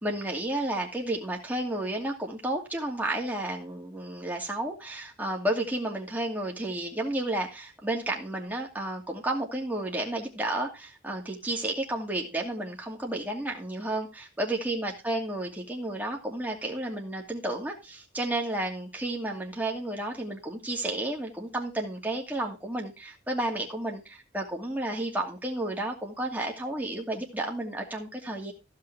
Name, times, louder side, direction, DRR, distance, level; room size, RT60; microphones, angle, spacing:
voice 1, 0.0-28.5, right 1 dB, 10° right, 2.5 m, -32 dB
15.0 x 5.9 x 4.7 m
head